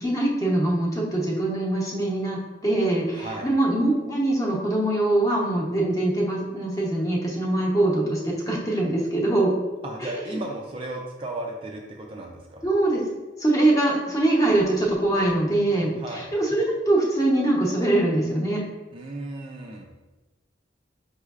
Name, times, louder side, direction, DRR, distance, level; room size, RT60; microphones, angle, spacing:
voice 1, 0.0-9.5 10.0-10.4 12.6-13.0 13.4-18.6, right 1 dB, 20° left, -3 dB, 0.8 m, -23 dB
voice 2, 3.1-3.5 9.8-12.6 16.0-16.3 18.9-19.9, right 2 dB, 30° right, 0 dB, 0.4 m, -35 dB
5.4 x 3.1 x 2.4 m, 1.2 s
head